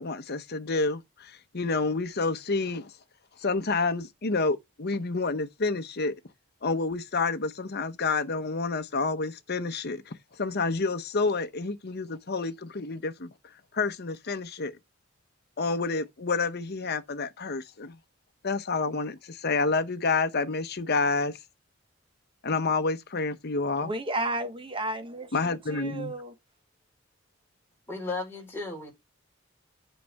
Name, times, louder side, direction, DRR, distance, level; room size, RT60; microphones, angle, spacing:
voice 1, 0.0-2.9 3.4-6.1 6.6-10.1 10.4-13.3 13.7-14.7 15.6-18.0 18.4-21.4 22.4-23.9 25.3-26.1, left 3 dB, 55° left, 0.9 m, -29 dB
voice 2, 23.8-26.3, right 1 dB, 25° right, 1.2 m, -33 dB
voice 3, 27.9-28.9, left 3 dB, 10° left, 4.4 m, -34 dB
9.3 x 5.5 x 3.5 m
head